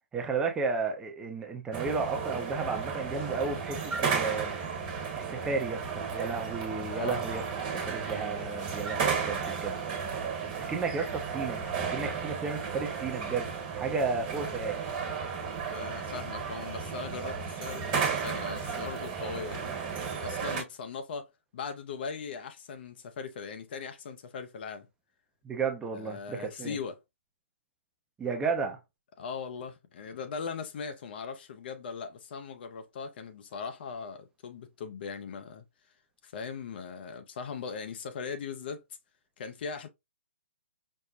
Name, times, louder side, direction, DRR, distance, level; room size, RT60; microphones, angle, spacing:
voice 1, 0.1-4.5 5.2-9.8 10.6-11.6 11.9-14.8 25.4-26.8 28.2-28.8, right 4 dB, 10° right, 0.7 m, -33 dB
sound 1, 1.7-20.6, right 6 dB, 35° right, 1.5 m, -34 dB
voice 2, 6.9-7.3 15.7-19.8 20.2-21.3 21.5-24.9 25.9-27.0 29.2-35.6 36.2-38.8 39.4-39.9, left 5 dB, 50° left, 0.6 m, -39 dB
5.3 x 2.1 x 2.6 m
figure-of-eight pair, 125°, 7 cm